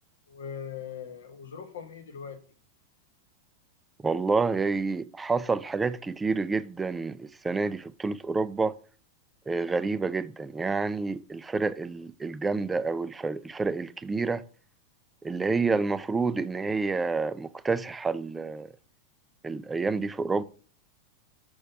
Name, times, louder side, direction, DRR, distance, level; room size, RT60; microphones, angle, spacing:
voice 1, 0.3-2.4, left 7 dB, 65° left, 1.3 m, -40 dB
voice 2, 4.0-8.7 9.5-14.4 15.2-18.7 19.4-20.4, right 4 dB, 10° right, 0.4 m, -28 dB
6.1 x 5.0 x 5.9 m
figure-of-eight pair, 90°, 0 cm